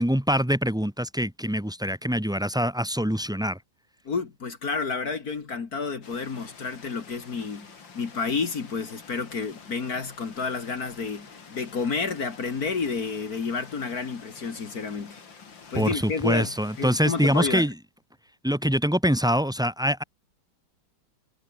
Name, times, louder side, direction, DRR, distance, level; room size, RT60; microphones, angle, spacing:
voice 1, 0.0-3.6 15.7-17.7 18.4-20.0, equal, 5° right, 0.8 m, -24 dB
voice 2, 4.1-15.2 15.7-17.7, left 5 dB, 50° left, 2.4 m, -30 dB
sound 1, 6.0-17.6, left 5 dB, 75° left, 3.4 m, -48 dB
omnidirectional pair, 2.1 m